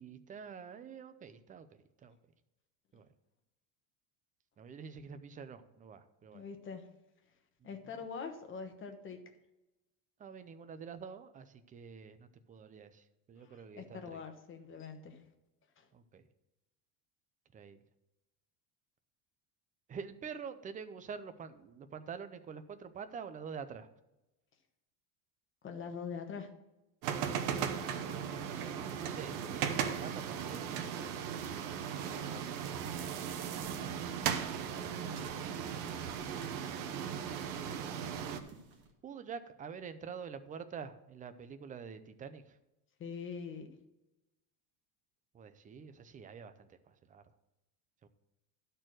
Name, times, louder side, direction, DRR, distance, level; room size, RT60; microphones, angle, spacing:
voice 1, 0.0-2.1 2.9-3.1 4.6-6.4 7.6-8.0 10.2-14.2 15.9-16.2 17.5-17.8 19.9-23.9 27.8-28.6 29.0-31.2 31.9-32.6 32.9-33.2 34.3-34.9 39.0-42.6 45.3-47.2 48.0-48.1, right 6 dB, 20° right, 10 dB, 0.5 m, -47 dB
voice 2, 6.3-6.8 7.6-9.2 13.4-15.2 15.8-15.9 25.6-26.5 43.0-43.7, left 5 dB, 25° left, 5 dB, 1.2 m, -43 dB
sound 1, 27.0-38.4, right 8 dB, 75° right, 1.2 m, -37 dB
sound 2, 29.4-33.9 34.2-38.9, right 4 dB, 45° right, 1.8 m, -58 dB
12.0 x 4.5 x 6.2 m, 0.95 s
cardioid pair, 145°, 47 cm